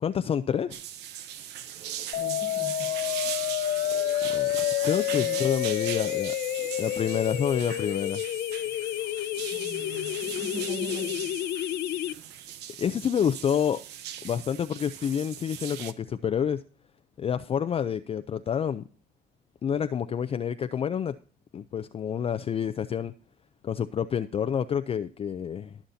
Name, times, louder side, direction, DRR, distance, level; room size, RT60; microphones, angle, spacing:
voice 1, 0.0-0.8 4.3-4.5 4.8-6.4 6.8-8.2 12.8-13.8 14.2-16.6 17.2-18.8 19.6-21.2 21.5-23.1 23.6-25.8, left 8 dB, 35° left, 0.5 m, -28 dB
sound 1, 0.7-15.9, right 10 dB, 85° right, 0.9 m, -39 dB
sound 2, 2.1-12.1, left 13 dB, 75° left, 0.8 m, -29 dB
voice 2, 2.1-3.0 5.2-5.5 9.5-11.3, right 4 dB, 35° right, 1.7 m, -41 dB
20.5 x 7.2 x 2.7 m
cardioid pair, 110°, 17 cm